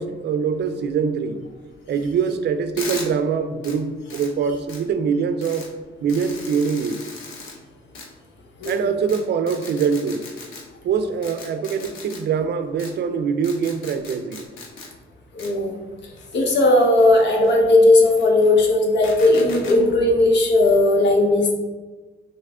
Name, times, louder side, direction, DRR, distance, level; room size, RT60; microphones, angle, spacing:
voice 1, 0.0-1.4 1.9-5.7 6.0-7.0 8.7-10.3 10.8-14.5, right 6 dB, 60° right, 9 dB, 0.4 m, -23 dB
sound 1, 2.8-3.1 3.6-3.7 4.1-4.3 4.7-4.8 5.4-5.7 6.1-7.5 7.9-8.1 8.6-8.7 9.1-9.2 9.5-10.6 11.2-12.2 12.8-12.9 13.4-14.9 15.4-15.5 16.2-17.5 18.0-18.7 19.0-19.8, left 3 dB, 90° left, 0.9 m, -37 dB
voice 2, 15.3-15.8 16.3-21.5, left 2 dB, 65° left, 1 dB, 1.0 m, -16 dB
4.1 x 3.2 x 3.6 m, 1.3 s
cardioid pair, 90°, 20 cm